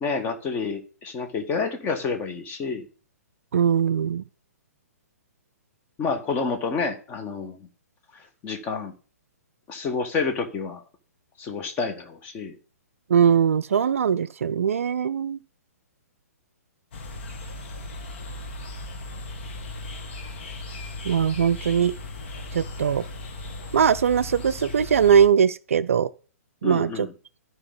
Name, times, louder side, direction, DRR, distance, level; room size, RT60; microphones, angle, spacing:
voice 1, 0.0-2.9 6.0-7.6 8.1-8.9 9.7-10.8 11.4-12.6 26.6-27.1, left 4 dB, 20° left, 1.5 m, -29 dB
voice 2, 3.5-4.2 13.1-15.4 21.1-21.9 22.5-23.0 23.7-26.1 26.6-27.1, right 7 dB, 55° right, 0.4 m, -21 dB
sound 1, 16.9-25.3, left 2 dB, 45° left, 1.5 m, -37 dB
13.5 x 4.7 x 4.0 m
figure-of-eight pair, 120°, 9 cm